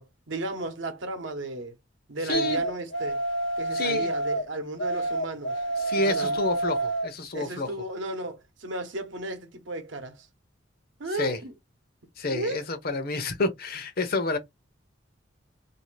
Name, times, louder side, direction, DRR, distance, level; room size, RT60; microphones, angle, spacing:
voice 1, 0.0-1.8 2.1-3.2 3.6-5.6 6.0-6.4 7.3-10.3 11.0-11.5 12.3-12.6, right 2 dB, 70° right, 0.8 m, -34 dB
voice 2, 2.2-2.6 3.7-4.1 5.8-7.7 11.1-11.4 12.2-14.4, left 2 dB, 50° left, 0.7 m, -29 dB
sound 1, 2.3-4.4 4.8-7.1, right 2 dB, 85° left, 0.6 m, -28 dB
2.6 x 2.4 x 3.1 m
head